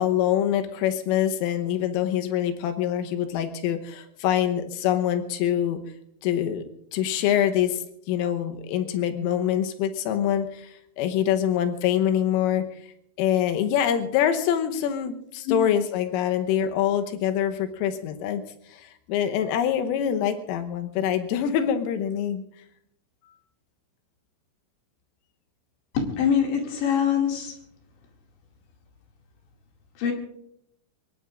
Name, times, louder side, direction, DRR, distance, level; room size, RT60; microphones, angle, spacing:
voice 1, 0.0-5.8 6.2-6.7 6.9-10.7 11.0-12.7 13.2-18.4 18.7-22.4, left 10 dB, 85° left, 7 dB, 3.6 m, -25 dB
voice 2, 25.9-27.6 30.0-30.1, left 8 dB, 70° left, 1 dB, 4.5 m, -24 dB
24.0 x 21.5 x 2.5 m, 0.74 s
omnidirectional pair, 5.8 m